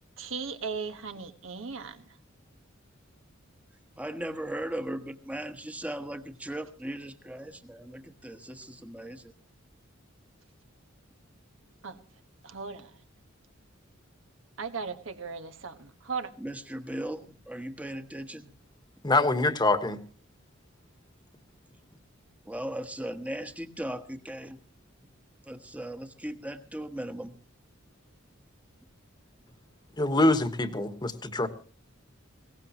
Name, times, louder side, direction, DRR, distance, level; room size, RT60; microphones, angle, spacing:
voice 1, 0.2-2.0 11.8-12.0 12.4-12.9 14.6-16.3, right 5 dB, 70° right, 8 dB, 1.3 m, -37 dB
voice 2, 4.0-9.3 16.4-18.5 22.5-24.6 25.4-27.4, right 1 dB, 5° right, 8 dB, 1.1 m, -37 dB
voice 3, 19.0-20.0 30.0-31.5, left 2 dB, 20° left, 10 dB, 1.3 m, -24 dB
21.0 x 17.5 x 3.0 m, 0.38 s
head